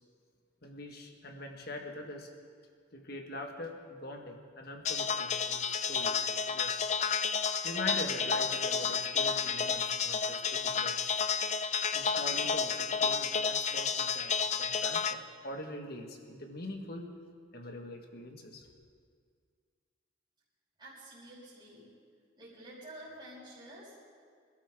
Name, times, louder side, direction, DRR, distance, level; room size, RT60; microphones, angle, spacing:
voice 1, 0.6-2.3 2.9-6.7 7.6-11.3 11.9-17.1 17.5-18.7, left 1 dB, 50° left, 3 dB, 1.7 m, -43 dB
sound 1, 4.8-15.1, left 6 dB, 35° left, 0.4 m, -31 dB
voice 2, 20.8-21.9 22.4-23.9, right 1 dB, 20° right, -11 dB, 5.6 m, -49 dB
27.0 x 12.5 x 3.8 m, 2.1 s
head